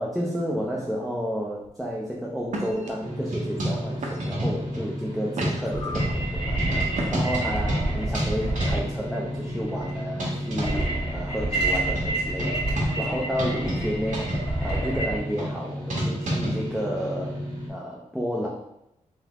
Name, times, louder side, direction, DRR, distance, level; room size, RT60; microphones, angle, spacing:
voice 1, 0.0-6.6 7.1-14.3 14.6-17.4 17.7-18.5, equal, ahead, -4 dB, 0.5 m, -31 dB
sound 1, 1.6-1.9 2.5-2.9 3.6-3.7 4.0-4.5 5.0-5.8 6.9-7.4, right 2 dB, 70° right, 0.8 m, -34 dB
sound 2, 3.0-17.7, equal, 90° right, 1.3 m, -30 dB
sound 3, 5.7-15.2, right 2 dB, 45° left, 1.3 m, -29 dB
3.7 x 3.3 x 2.9 m, 0.81 s
wide cardioid pair, 145°, 13 cm